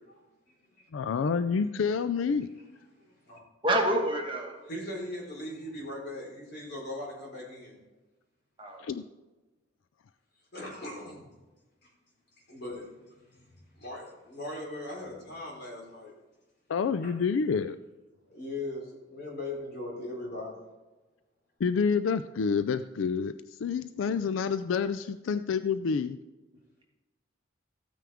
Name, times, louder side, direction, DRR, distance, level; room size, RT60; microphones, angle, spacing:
voice 1, 0.9-2.5 8.8-9.0 16.7-17.8 21.6-26.2, left 5 dB, 80° left, 12 dB, 0.4 m, -28 dB
voice 2, 3.6-4.5 8.6-8.8, right 1 dB, 25° right, 0 dB, 1.7 m, -27 dB
voice 3, 4.7-7.8 10.5-11.3 11.8-11.9 12.5-16.1 17.0-17.1 18.3-20.6, left 1 dB, 55° left, -3 dB, 4.5 m, -39 dB
14.5 x 9.1 x 3.6 m, 1.1 s
head